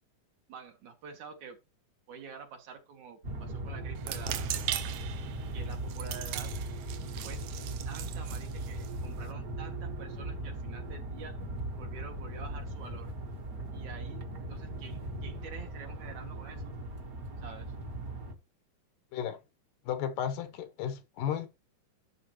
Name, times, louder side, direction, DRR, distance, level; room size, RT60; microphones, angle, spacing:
voice 1, 0.5-1.6 2.1-4.5 5.5-6.5 7.2-7.4 7.9-11.4 11.8-13.1 13.7-14.2 14.5-16.7 17.4-17.7, right 6 dB, 70° right, 2.6 m, -47 dB
sound 1, 3.2-18.3, right 2 dB, 45° right, 1.2 m, -38 dB
sound 2, 4.0-9.3, right 12 dB, 85° right, 1.4 m, -39 dB
voice 2, 19.9-21.5, left 9 dB, 90° left, 2.7 m, -34 dB
12.0 x 6.6 x 3.0 m
omnidirectional pair, 3.6 m